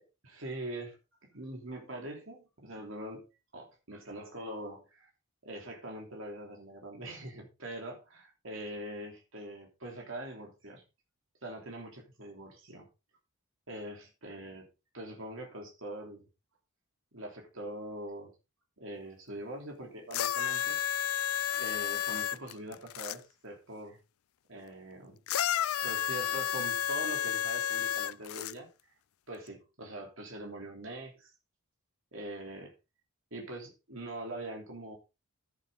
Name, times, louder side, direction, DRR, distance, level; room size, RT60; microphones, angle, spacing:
voice 1, 0.2-1.0 1.3-3.3 3.5-5.1 5.4-8.2 8.4-10.8 11.4-12.9 13.7-14.7 14.9-16.2 17.1-18.3 18.8-21.1 21.5-24.0 24.5-25.2 25.8-28.7 29.3-31.3 32.1-32.7 33.3-35.0, right 1 dB, 60° right, 1 dB, 3.2 m, -43 dB
sound 1, 20.1-23.2 25.3-28.5 29.5-29.6, left 11 dB, 75° left, 0.4 m, -31 dB
11.5 x 9.8 x 3.8 m, 0.28 s
head